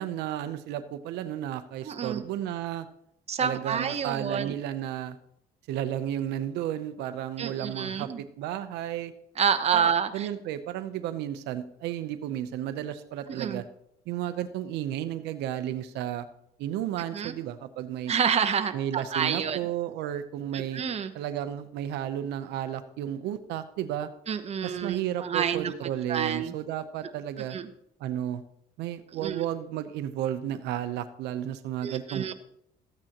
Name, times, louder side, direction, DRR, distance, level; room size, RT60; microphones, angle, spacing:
voice 1, 0.0-2.9 3.4-5.2 5.7-9.1 9.7-13.6 14.1-16.3 16.6-18.1 18.7-20.8 21.1-24.1 24.6-27.6 28.0-28.4 28.8-32.3, right 11 dB, 85° right, 11 dB, 0.7 m, -33 dB
voice 2, 1.8-2.2 3.3-4.5 7.4-8.2 9.4-10.3 13.3-13.6 17.1-17.3 18.1-19.6 20.5-21.1 24.3-25.7 26.1-26.5 27.5-27.7 29.2-29.4 31.8-32.3, right 7 dB, 40° right, 8 dB, 0.9 m, -28 dB
13.5 x 8.9 x 2.9 m, 0.76 s
cardioid pair, 110°, 17 cm